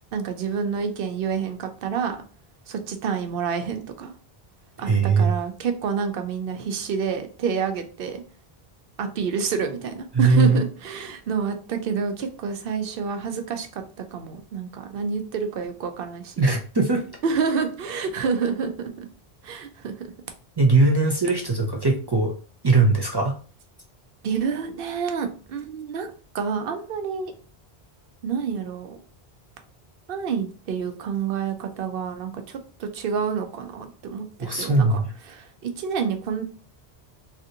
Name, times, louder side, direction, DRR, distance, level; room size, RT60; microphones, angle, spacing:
voice 1, 0.1-2.2 2.7-4.1 4.8-8.2 9.0-13.8 14.1-16.4 17.2-19.1 19.4-20.1 24.2-27.3 28.2-29.0 30.1-34.3 34.5-35.0 35.3-36.4, right 6 dB, 65° right, 7 dB, 0.7 m, -28 dB
voice 2, 4.8-5.3 10.1-10.6 16.4-17.0 20.6-22.3 22.6-23.4 34.4-35.1, right 3 dB, 45° right, 1 dB, 0.3 m, -20 dB
3.3 x 2.5 x 2.7 m, 0.39 s
omnidirectional pair, 1.1 m